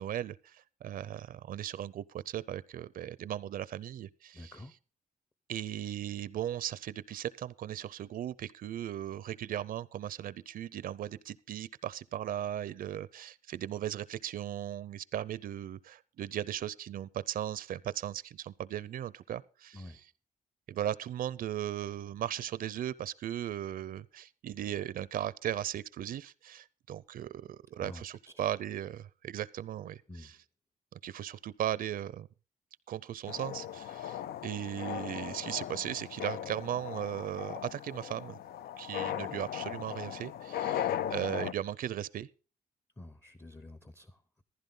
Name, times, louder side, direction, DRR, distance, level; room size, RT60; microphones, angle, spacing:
voice 1, 0.0-4.5 5.5-20.1 20.7-30.4 31.0-32.3 32.9-38.4 38.8-42.3, right 11 dB, 65° right, 0.5 m, -37 dB
voice 2, 4.3-4.7 19.7-20.0 27.8-28.3 30.1-30.3 43.0-44.4, left 1 dB, 15° left, 0.6 m, -48 dB
sound 1, 33.3-41.5, left 10 dB, 85° left, 0.5 m, -38 dB
14.5 x 11.5 x 3.8 m
wide cardioid pair, 165°, 16 cm